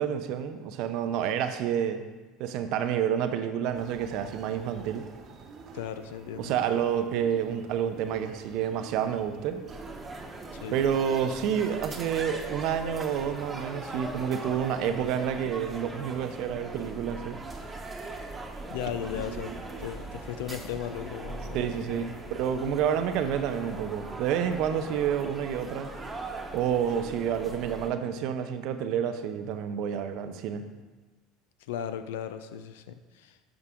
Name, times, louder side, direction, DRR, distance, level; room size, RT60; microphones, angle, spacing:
voice 1, 0.0-2.0 2.4-5.1 6.4-9.6 10.7-17.4 19.3-19.4 19.7-19.9 21.5-25.9 26.5-30.7, right 8 dB, 65° right, 9 dB, 0.6 m, -29 dB
sound 1, 3.7-14.3, right 5 dB, 45° right, 0.9 m, -49 dB
voice 2, 5.7-6.5 10.6-10.8 18.7-22.1 31.6-33.4, left 9 dB, 85° left, 10 dB, 0.5 m, -36 dB
sound 2, 9.7-27.9, right 2 dB, 20° right, 1.1 m, -40 dB
9.7 x 4.8 x 3.7 m, 1.3 s
supercardioid pair, 95°, 0 cm